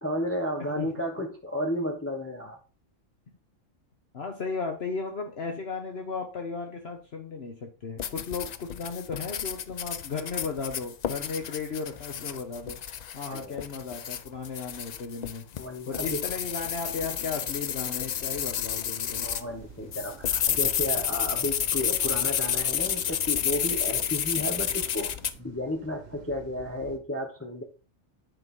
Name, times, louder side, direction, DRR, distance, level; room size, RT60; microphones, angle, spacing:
voice 1, 0.0-2.6 13.3-13.6 15.6-16.2 19.2-27.6, left 1 dB, 10° left, 1 dB, 1.0 m, -33 dB
voice 2, 4.1-12.8 13.1-15.4 15.9-19.2, left 4 dB, 55° left, 3 dB, 1.3 m, -35 dB
sound 1, 8.0-19.5 19.9-25.3, left 9 dB, 70° left, 0.4 m, -30 dB
sound 2, 19.0-27.0, right 6 dB, 90° right, 1.5 m, -50 dB
9.1 x 3.9 x 5.4 m, 0.35 s
omnidirectional pair, 1.3 m